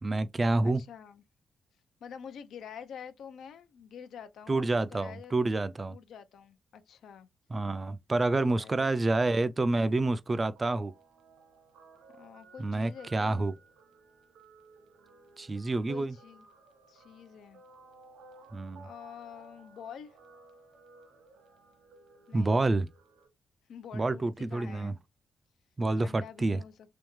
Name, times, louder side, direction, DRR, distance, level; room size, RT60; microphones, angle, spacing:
voice 1, 0.0-0.8 4.5-6.0 7.5-10.9 12.6-13.5 15.4-16.1 18.5-18.9 22.3-22.9 23.9-24.9 25.8-26.6, right 2 dB, 25° right, 0.3 m, -28 dB
voice 2, 0.6-1.2 2.0-5.3 5.9-7.3 8.4-9.1 12.1-13.5 15.9-16.5 16.9-17.6 18.8-20.2 22.3-22.8 23.7-25.0 26.0-26.7, left 8 dB, 80° left, 0.6 m, -47 dB
Guitar, 10.6-23.3, right 3 dB, 85° right, 1.0 m, -57 dB
3.5 x 3.4 x 3.0 m
cardioid pair, 110°, 0 cm